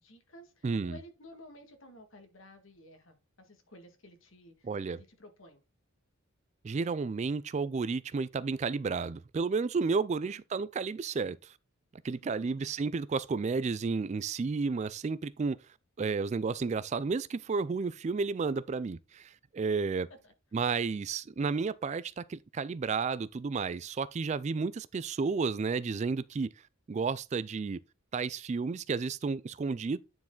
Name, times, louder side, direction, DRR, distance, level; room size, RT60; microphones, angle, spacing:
voice 1, 0.0-5.6 10.2-10.4 12.4-12.5 20.2-20.3, left 1 dB, 65° left, 1.8 m, -54 dB
voice 2, 0.6-1.0 4.6-5.0 6.6-11.5 12.0-15.6 16.0-20.1 20.5-26.5 26.9-27.8 28.1-30.0, right 4 dB, 35° right, 0.3 m, -32 dB
9.7 x 4.6 x 3.8 m
head